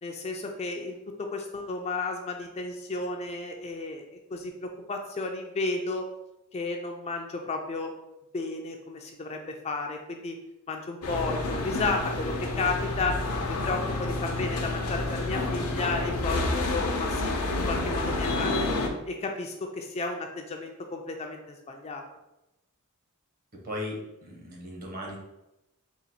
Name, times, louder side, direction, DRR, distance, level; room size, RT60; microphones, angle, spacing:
voice 1, 0.0-6.1 6.5-7.9 8.3-10.4 10.7-17.4 17.7-18.8 19.1-22.0, left 3 dB, 30° left, 3 dB, 0.3 m, -33 dB
sound 1, 11.0-18.9, left 2 dB, 85° left, 0.6 m, -29 dB
voice 2, 23.5-25.2, left 1 dB, 40° right, -1 dB, 0.9 m, -37 dB
3.9 x 2.4 x 4.2 m, 0.93 s
head